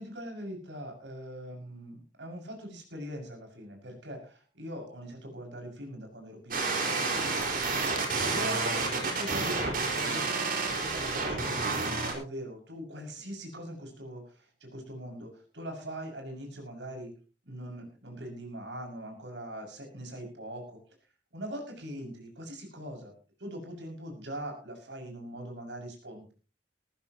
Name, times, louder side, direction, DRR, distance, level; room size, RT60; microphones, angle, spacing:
voice 1, 0.0-7.0 8.2-17.1 17.4-20.8 21.3-23.1 23.4-26.3, equal, 80° right, 2 dB, 6.4 m, -41 dB
sound 1, 6.5-12.1, right 3 dB, 55° right, 4.8 m, -30 dB
19.0 x 15.0 x 3.0 m, 0.36 s
head